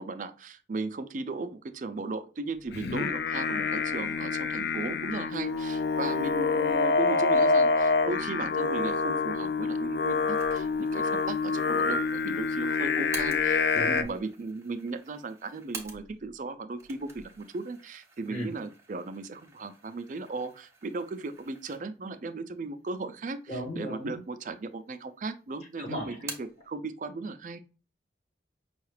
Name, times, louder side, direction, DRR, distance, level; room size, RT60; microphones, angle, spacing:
voice 1, 0.0-27.6, right 3 dB, 45° right, 10 dB, 0.4 m, -36 dB
Singing, 2.7-14.0, left 4 dB, 60° left, 0.3 m, -27 dB
sound 1, 10.4-16.4 16.7-22.2 22.6-22.7 23.5-24.2 24.5-25.3 25.6-26.7, right 4 dB, 15° right, 0.7 m, -48 dB
voice 2, 13.7-14.1 18.3-18.5 23.5-24.2 25.8-26.2, equal, 40° left, -3 dB, 1.8 m, -35 dB
5.5 x 2.4 x 3.2 m, 0.34 s
head